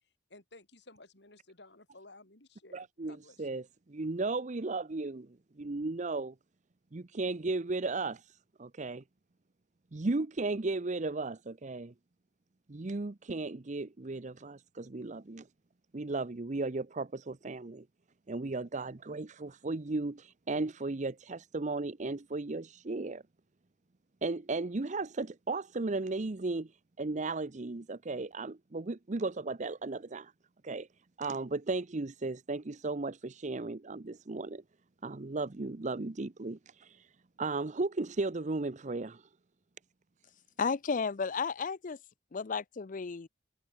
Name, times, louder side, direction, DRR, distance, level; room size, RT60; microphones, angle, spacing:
voice 1, 0.0-3.7, left 2 dB, 65° left, 6.0 m, -56 dB
voice 2, 2.7-3.6 3.9-6.3 6.9-8.2 8.6-9.0 9.9-11.9 12.7-15.5 15.9-17.8 18.3-23.2 24.2-26.7 27.0-30.3 30.6-30.9 31.2-34.6 35.0-37.1 37.4-39.2, right 3 dB, 40° right, 0.8 m, -35 dB
voice 3, 40.6-42.0 42.3-43.3, left 5 dB, 45° left, 0.5 m, -33 dB
head